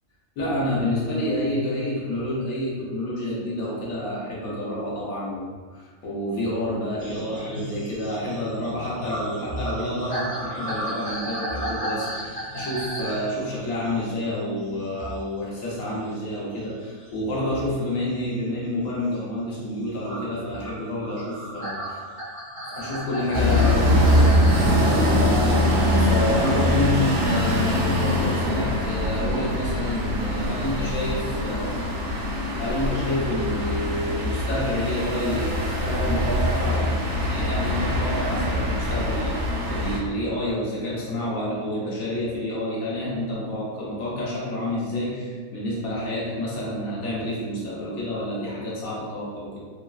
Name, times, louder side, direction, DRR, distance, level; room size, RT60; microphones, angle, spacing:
voice 1, 0.4-22.0 22.6-25.2 26.0-31.8 32.3-49.6, left 1 dB, 80° left, -6 dB, 1.2 m, -29 dB
sound 1, 7.0-15.3 15.6-18.0 18.4-18.9 20.1-24.7 26.0-26.1, right 1 dB, 10° left, 0.5 m, -34 dB
sound 2, 23.3-40.0, left 1 dB, 60° right, 0.7 m, -23 dB
3.1 x 2.2 x 2.3 m, 1.5 s
omnidirectional pair, 1.5 m